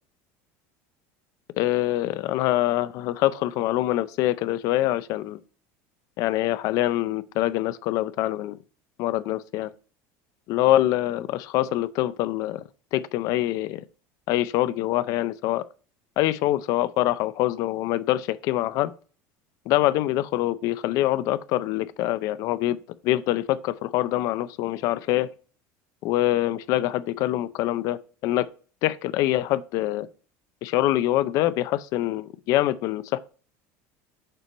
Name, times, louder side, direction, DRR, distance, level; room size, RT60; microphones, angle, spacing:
voice 1, 1.6-5.4 6.2-8.6 9.0-9.7 10.5-12.6 12.9-13.8 14.3-15.7 16.2-18.9 19.7-22.8 23.0-25.3 26.0-28.5 28.8-30.1 30.6-33.2, left 15 dB, 55° left, 0.4 m, -24 dB
6.7 x 4.5 x 4.0 m
cardioid pair, 150°, 7 cm